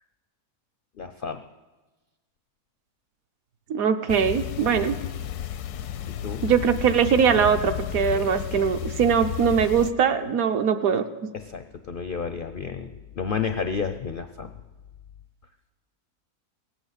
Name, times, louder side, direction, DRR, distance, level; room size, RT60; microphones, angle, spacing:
voice 1, 1.0-1.4 6.0-6.4 8.1-8.3 11.3-14.5, left 6 dB, 65° left, 9 dB, 0.5 m, -31 dB
voice 2, 3.7-5.0 6.4-11.0, right 7 dB, 70° right, 8 dB, 1.2 m, -21 dB
sound 1, 4.1-9.9, left 10 dB, 85° left, 1.2 m, -32 dB
18.0 x 8.1 x 8.1 m, 1.2 s
omnidirectional pair, 1.6 m